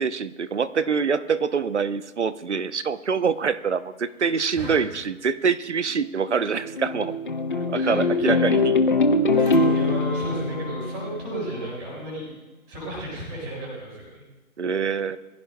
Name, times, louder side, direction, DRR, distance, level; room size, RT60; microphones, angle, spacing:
voice 1, 0.0-7.1 7.7-8.7 14.6-15.2, right 5 dB, 50° right, 14 dB, 0.8 m, -25 dB
sound 1, 6.0-11.7, left 3 dB, 35° left, 0.9 m, -23 dB
voice 2, 7.5-8.5 9.4-12.3 12.7-14.2, right 1 dB, 10° right, -4 dB, 4.9 m, -34 dB
23.0 x 15.5 x 2.2 m, 1.1 s
hypercardioid pair, 175°, 44 cm